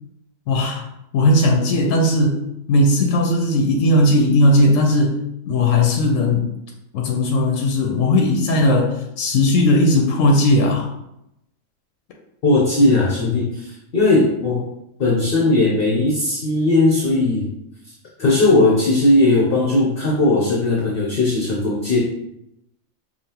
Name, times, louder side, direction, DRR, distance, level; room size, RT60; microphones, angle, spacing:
voice 1, 0.5-0.8 1.1-2.4 2.7-5.2 5.5-6.5 6.9-10.9, left 1 dB, 80° left, 1 dB, 1.0 m, -17 dB
voice 2, 12.4-14.7 15.0-17.5 18.2-22.0, left 2 dB, 50° left, -4 dB, 0.8 m, -17 dB
5.2 x 2.5 x 2.9 m, 0.83 s
omnidirectional pair, 1.4 m